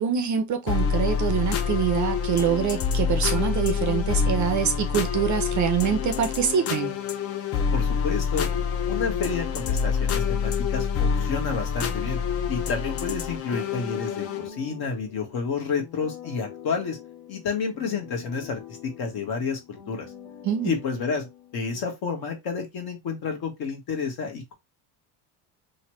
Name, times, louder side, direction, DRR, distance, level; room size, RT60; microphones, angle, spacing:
voice 1, 0.0-6.9 20.4-20.8, right 8 dB, 40° right, 0.5 m, -25 dB
sound 1, 0.7-14.5, left 6 dB, 35° left, 0.4 m, -26 dB
voice 2, 7.7-8.5 8.9-12.2 12.5-17.0 17.3-20.1 20.6-24.5, left 5 dB, 50° left, 1.3 m, -30 dB
sound 2, 13.8-21.9, left 8 dB, 75° left, 1.2 m, -45 dB
3.1 x 2.1 x 3.0 m
cardioid pair, 115°, 47 cm